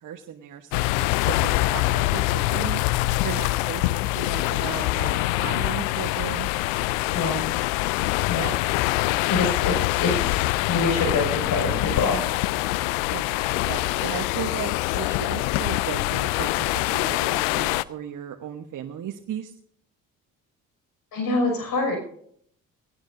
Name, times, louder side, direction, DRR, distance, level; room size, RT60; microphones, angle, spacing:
voice 1, 0.0-2.8 3.2-3.8 4.1-6.5 13.1-19.5, right 9 dB, 50° right, 5 dB, 1.2 m, -36 dB
sound 1, 0.7-17.8, left 19 dB, 75° left, 0.5 m, -24 dB
voice 2, 7.1-7.4 8.3-8.5 9.3-12.2 21.1-22.0, left 3 dB, 55° left, 2 dB, 5.9 m, -25 dB
18.5 x 17.0 x 2.7 m, 0.63 s
hypercardioid pair, 50°, 40 cm